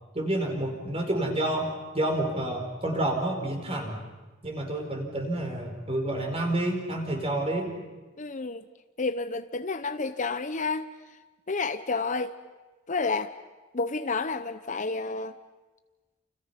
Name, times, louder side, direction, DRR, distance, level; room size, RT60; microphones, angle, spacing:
voice 1, 0.1-4.0 4.4-7.7, right 1 dB, 30° right, 2 dB, 5.1 m, -29 dB
voice 2, 8.2-8.6 9.0-10.9 11.5-12.3 12.9-13.3 13.7-15.3, left 3 dB, 40° left, 10 dB, 0.8 m, -30 dB
29.5 x 29.5 x 5.9 m, 1.2 s
head